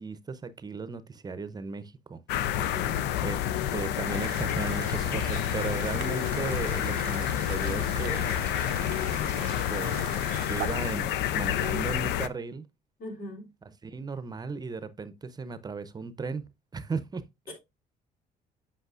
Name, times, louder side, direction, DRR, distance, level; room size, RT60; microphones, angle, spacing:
voice 1, 0.0-2.2 3.2-3.4 3.7-8.4 9.7-10.2 10.4-12.7 13.8-16.4 16.7-17.2, right 4 dB, 25° right, 0.6 m, -36 dB
sound 1, 2.3-12.3, left 11 dB, 85° left, 0.5 m, -29 dB
voice 2, 2.5-3.1 13.0-13.5 17.5-17.6, left 1 dB, 60° left, 3.2 m, -41 dB
sound 2, 4.0-10.7, right 14 dB, 70° right, 0.5 m, -41 dB
7.9 x 5.7 x 2.5 m
cardioid pair, 110°, 17 cm